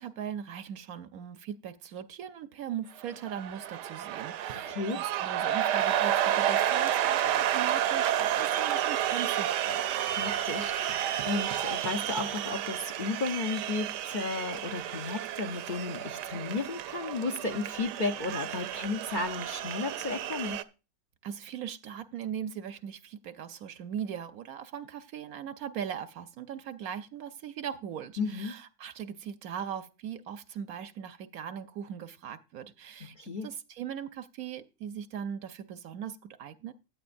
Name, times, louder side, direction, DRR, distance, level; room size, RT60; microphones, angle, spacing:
voice 1, 0.0-9.8 21.2-33.2 33.4-36.7, right 9 dB, 65° right, 1.0 m, -39 dB
sound 1, 3.0-20.6, right 11 dB, 85° right, 1.3 m, -31 dB
voice 2, 4.7-5.0 10.1-20.6 28.2-28.6 33.1-33.5, left 3 dB, 45° left, 0.6 m, -34 dB
15.5 x 9.3 x 2.5 m
omnidirectional pair, 1.8 m